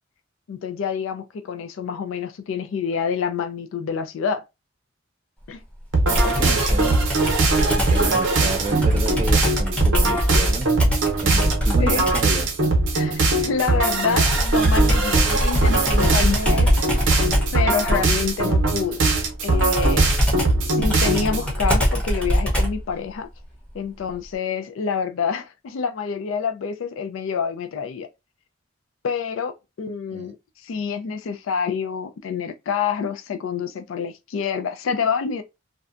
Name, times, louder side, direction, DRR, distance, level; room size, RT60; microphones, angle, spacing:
voice 1, 0.5-4.4 5.5-5.6 11.8-12.1 12.9-17.2 17.5-19.0 19.4-20.1 20.6-23.3 23.7-28.1 29.0-30.4 30.6-35.4, left 6 dB, 80° left, 0.3 m, -27 dB
sound 1, 5.9-21.5, right 2 dB, 70° right, 0.6 m, -21 dB
Computer keyboard, 6.1-12.4 14.2-22.9, equal, 5° left, 0.6 m, -23 dB
voice 2, 6.1-7.2 7.7-10.7 11.2-12.5 30.1-30.3, right 2 dB, 30° right, 0.3 m, -31 dB
2.6 x 2.1 x 2.4 m
head